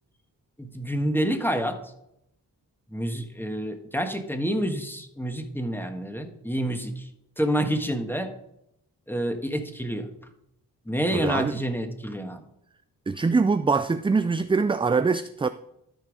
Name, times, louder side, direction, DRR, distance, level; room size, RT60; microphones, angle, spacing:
voice 1, 0.6-1.8 2.9-7.1 7.4-8.3 9.1-10.1 10.9-12.4, equal, 5° left, 1.4 m, -28 dB
voice 2, 11.1-11.6 13.1-15.5, right 4 dB, 15° right, 0.3 m, -23 dB
13.0 x 4.6 x 4.9 m
cardioid pair, 45°, 41 cm